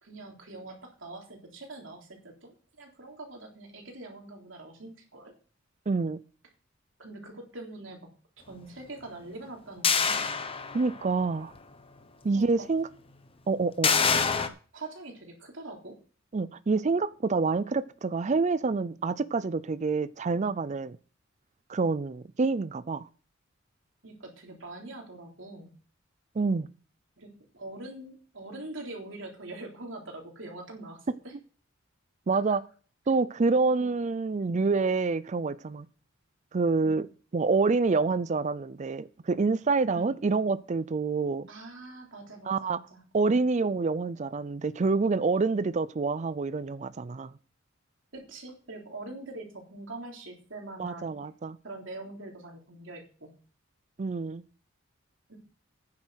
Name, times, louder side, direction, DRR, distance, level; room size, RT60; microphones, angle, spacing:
voice 1, 0.0-5.3 7.0-8.0 8.5-10.3 12.3-12.7 14.0-14.3 14.7-16.0 24.0-25.7 27.2-31.3 32.4-32.6 33.7-33.9 36.8-37.0 39.9-40.1 41.5-43.4 48.1-51.2 51.6-53.3 55.3-55.4, right 2 dB, 65° right, 3.5 m, -43 dB
voice 2, 5.9-6.2 10.7-11.5 12.2-12.9 13.5-13.9 16.3-21.0 21.7-23.1 26.4-26.7 32.3-32.6 33.1-35.9 36.5-37.1 37.3-41.5 42.5-42.8 43.1-47.3 50.8-51.6 54.0-54.4, right 4 dB, 35° right, 0.4 m, -27 dB
sound 1, 9.8-11.1 11.5-11.6 13.8-14.5, left 5 dB, 30° left, 1.0 m, -25 dB
9.8 x 7.6 x 6.3 m
head